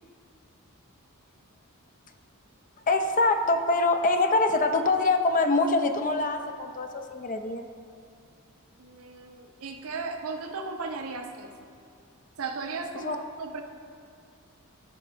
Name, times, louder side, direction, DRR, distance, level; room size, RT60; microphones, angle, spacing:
voice 1, 2.9-7.7 13.0-13.2, left 3 dB, 35° left, 7 dB, 0.4 m, -24 dB
voice 2, 8.8-11.5 12.4-13.6, right 4 dB, 65° right, 5 dB, 0.6 m, -36 dB
13.0 x 4.6 x 2.5 m, 2.4 s
head